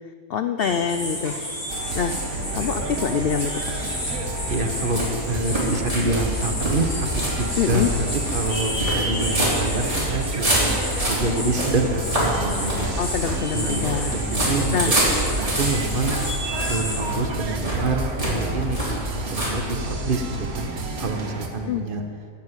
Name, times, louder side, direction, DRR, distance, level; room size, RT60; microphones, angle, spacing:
voice 1, 0.3-1.4 1.9-2.2 2.5-3.7 7.6-7.9 13.0-14.1 14.7-15.0 21.6-21.9, left 7 dB, 80° left, 8 dB, 0.5 m, -25 dB
sound 1, 0.6-17.0, equal, 65° left, 4.2 m, -32 dB
sound 2, 1.7-21.5, right 2 dB, 70° right, 1.7 m, -31 dB
sound 3, 3.8-20.1, right 1 dB, 20° right, 3.9 m, -27 dB
voice 2, 4.5-7.9 8.3-12.9 13.5-16.1 16.7-20.2 20.5-20.7 21.0-22.0, right 2 dB, 40° right, 4 dB, 1.0 m, -27 dB
13.5 x 7.2 x 8.1 m, 2.3 s
omnidirectional pair, 1.6 m